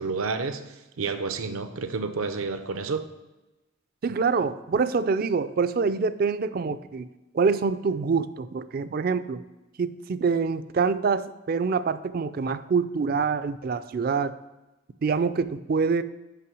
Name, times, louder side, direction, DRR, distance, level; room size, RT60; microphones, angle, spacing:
voice 1, 0.0-3.1, right 4 dB, 85° right, 9 dB, 0.7 m, -30 dB
voice 2, 4.0-7.1 7.3-9.4 9.8-14.3 15.0-16.0, right 5 dB, 45° right, 14 dB, 0.3 m, -25 dB
5.8 x 5.7 x 6.1 m, 1.1 s
head